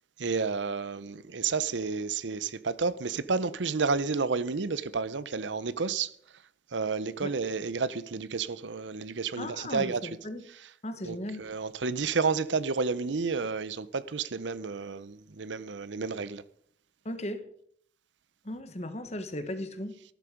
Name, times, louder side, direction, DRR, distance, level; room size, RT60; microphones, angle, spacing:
voice 1, 0.2-6.1 6.7-10.0 11.0-16.4, right 4 dB, 90° right, 0.7 m, -31 dB
voice 2, 9.4-10.4 10.8-11.5 17.0-17.4 18.4-20.0, left 1 dB, 35° left, 1.4 m, -36 dB
14.0 x 11.5 x 5.0 m
head